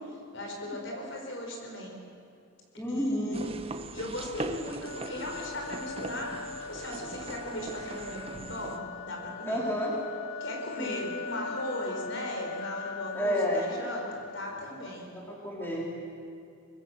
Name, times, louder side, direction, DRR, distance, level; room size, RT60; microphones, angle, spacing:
voice 1, 0.3-2.0 2.9-3.5 3.9-9.6 10.4-15.1, left 1 dB, 60° left, 1 dB, 5.5 m, -38 dB
voice 2, 2.8-3.5 9.5-9.9 10.8-11.1 13.1-13.7 15.1-16.0, equal, 10° left, -3 dB, 3.4 m, -30 dB
sound 1, 3.3-8.8, right 2 dB, 25° right, 0.9 m, -41 dB
sound 2, 4.8-14.7, left 5 dB, 90° left, 2.1 m, -40 dB
25.0 x 20.5 x 7.7 m, 2.5 s
head